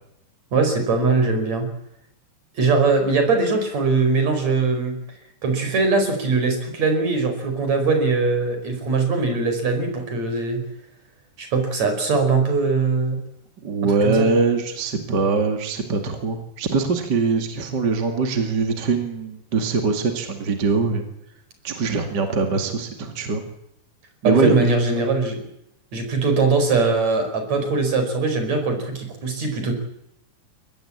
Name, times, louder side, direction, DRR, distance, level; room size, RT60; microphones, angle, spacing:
voice 1, 0.5-1.7 2.6-5.0 5.4-10.6 11.4-13.2 13.8-14.3 24.2-25.4 25.9-29.8, right 4 dB, 60° right, 6 dB, 6.3 m, -21 dB
voice 2, 13.6-21.0 21.6-23.4 24.2-24.5, right 4 dB, 35° right, 5 dB, 2.6 m, -22 dB
23.5 x 19.5 x 8.8 m, 0.79 s
omnidirectional pair, 3.6 m